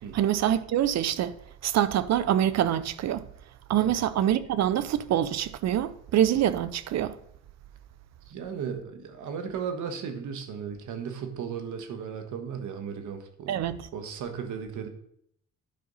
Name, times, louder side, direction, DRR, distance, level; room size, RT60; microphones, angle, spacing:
voice 1, 0.1-1.3 1.6-3.3 3.7-7.1 13.5-13.8, right 11 dB, 60° right, 0.5 m, -25 dB
voice 2, 8.3-13.6 13.9-14.9, right 7 dB, 80° right, 1.4 m, -35 dB
10.5 x 5.2 x 4.1 m
cardioid pair, 90°, 30 cm